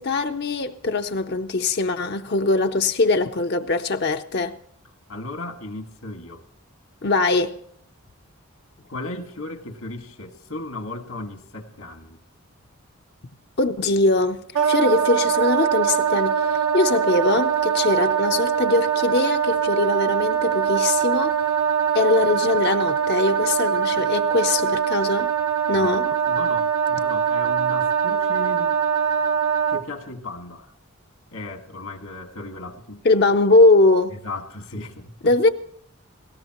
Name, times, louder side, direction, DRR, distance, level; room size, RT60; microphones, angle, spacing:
voice 1, 0.0-4.6 7.0-7.6 13.6-21.4 21.9-25.3 25.7-26.1 33.0-34.2 35.2-35.5, left 2 dB, 50° left, 0.6 m, -21 dB
voice 2, 5.1-6.4 8.9-12.2 25.7-28.8 29.7-30.7 31.3-33.0 34.2-35.3, left 2 dB, 75° left, 1.8 m, -36 dB
Wind instrument woodwind instrument, 14.5-29.8, right 8 dB, 85° right, 1.3 m, -22 dB
19.0 x 17.5 x 3.0 m
head